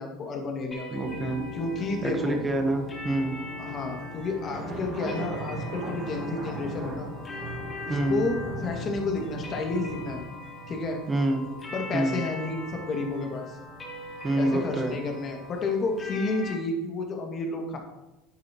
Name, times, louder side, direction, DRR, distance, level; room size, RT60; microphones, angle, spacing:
voice 1, 0.0-1.0 1.5-2.4 3.6-7.1 7.8-10.2 10.7-11.0 11.7-13.6 14.4-17.8, left 3 dB, 40° left, 2 dB, 2.1 m, -31 dB
sound 1, 0.7-16.5, left 1 dB, 25° left, 3.2 m, -43 dB
sound 2, 0.9-16.5, left 3 dB, 80° left, 3.4 m, -43 dB
voice 2, 0.9-1.4 2.0-3.4 7.9-8.3 11.1-11.5 11.9-12.2 14.2-15.0, right 2 dB, 20° right, 4 dB, 1.2 m, -27 dB
sound 3, 4.5-10.2, right 2 dB, 50° right, 3.0 m, -37 dB
11.0 x 8.3 x 3.0 m, 0.99 s
supercardioid pair, 95°, 0 cm